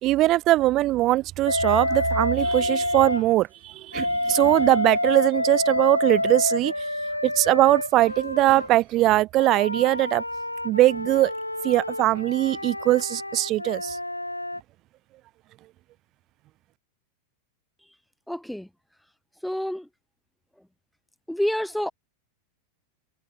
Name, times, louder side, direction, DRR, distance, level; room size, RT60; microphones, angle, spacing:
voice 1, 0.0-6.9 7.2-10.2 10.6-11.3 11.6-14.0, right 16 dB, 35° right, 0.4 m, -21 dB
Wind instrument woodwind instrument, 1.5-3.3 3.9-8.7 9.4-14.6, left 1 dB, 85° left, 0.6 m, -28 dB
voice 2, 18.3-18.7 19.4-19.9 21.3-21.9, equal, ahead, 0.8 m, -28 dB
figure-of-eight pair, 90°, 0 cm